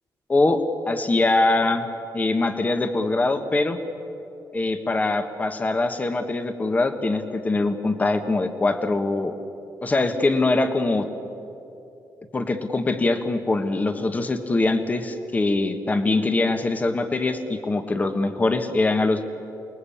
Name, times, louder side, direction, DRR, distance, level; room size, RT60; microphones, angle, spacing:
voice 1, 0.3-1.9 2.1-3.8 4.5-9.3 9.8-11.1 12.3-19.2, left 2 dB, 20° left, 7 dB, 1.4 m, -23 dB
29.0 x 20.5 x 8.7 m, 2.8 s
wide cardioid pair, 175°, 7 cm